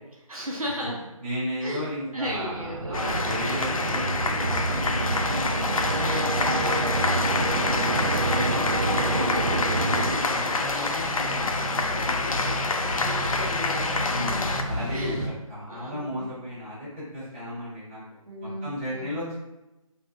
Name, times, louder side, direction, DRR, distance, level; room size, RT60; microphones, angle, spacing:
voice 1, 0.3-1.0 1.6-1.9 2.1-3.4 13.0-14.6 14.9-15.3 15.7-16.3 18.3-19.1, equal, 75° right, -3 dB, 0.9 m, -36 dB
voice 2, 1.2-7.1 7.8-12.6 14.1-15.2 15.5-18.0 18.4-19.4, equal, 20° right, -13 dB, 1.4 m, -35 dB
sound 1, 2.3-10.8, right 2 dB, 55° right, 0.4 m, -28 dB
Mechanical fan, 2.6-2.7 2.9-15.3, equal, 30° left, 1.0 m, -36 dB
sound 2, 2.9-14.6, left 3 dB, 70° left, 0.4 m, -27 dB
3.5 x 2.5 x 2.5 m, 0.98 s
figure-of-eight pair, 170°, 18 cm